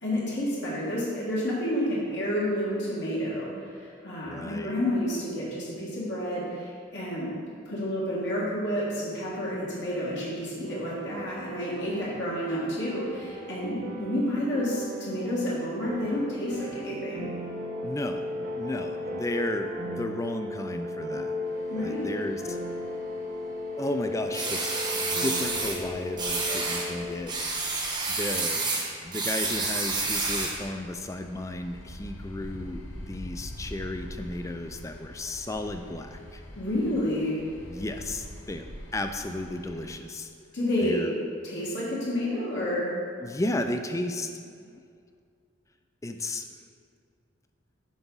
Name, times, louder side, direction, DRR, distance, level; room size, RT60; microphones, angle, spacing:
voice 1, 0.0-7.3 7.7-17.2 21.7-22.1 36.6-37.4 40.5-41.1 41.4-42.9, left 1 dB, 55° left, -7 dB, 1.7 m, -30 dB
voice 2, 4.2-4.8 17.8-21.4 21.7-22.6 23.7-27.3 28.2-36.4 37.7-38.6 38.9-40.3 40.8-41.1 43.2-44.8 46.0-46.4, left 1 dB, 15° left, 6 dB, 0.3 m, -34 dB
sound 1, 10.6-27.1, left 1 dB, 45° right, 1.0 m, -36 dB
sound 2, 21.4-39.9, equal, 80° left, 1.2 m, -46 dB
sound 3, 24.3-25.8 26.2-26.9 27.3-30.6, right 3 dB, 20° right, 0.9 m, -29 dB
9.2 x 6.0 x 4.0 m, 2.3 s
head